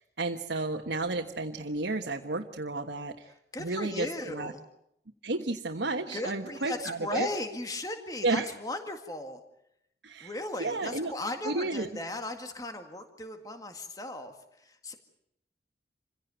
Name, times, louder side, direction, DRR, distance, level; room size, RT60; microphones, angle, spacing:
voice 1, 0.0-3.3 3.6-4.5 5.2-7.3 8.2-8.5 10.0-10.3 10.6-11.1 11.4-11.9, right 2 dB, 85° right, 2 dB, 1.4 m, -32 dB
voice 2, 3.5-4.6 6.1-9.4 10.2-14.9, left 1 dB, 20° left, 6 dB, 1.9 m, -37 dB
27.0 x 16.5 x 9.1 m, 0.77 s
head